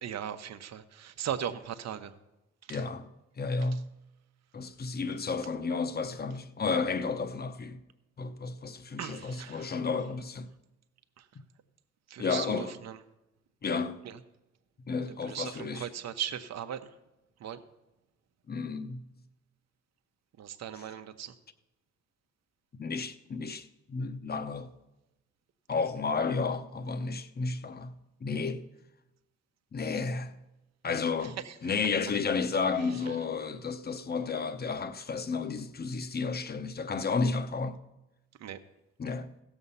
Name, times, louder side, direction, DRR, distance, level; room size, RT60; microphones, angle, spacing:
voice 1, 0.0-2.1 2.7-2.8 9.0-9.7 12.1-12.9 15.2-15.5 15.8-16.9 17.4-17.6 20.4-21.3 38.4-38.6, right 9 dB, 60° right, 0.9 m, -37 dB
voice 2, 2.7-3.1 3.4-3.8 4.5-7.8 8.2-10.5 12.2-12.9 13.6-14.1 14.9-15.9 18.5-19.0 20.7-21.0 22.8-24.7 25.7-27.9 28.2-28.6 29.7-30.3 30.8-37.8 39.0-39.3, left 4 dB, 30° left, 0.8 m, -32 dB
16.0 x 7.1 x 5.5 m
cardioid pair, 90°, 30 cm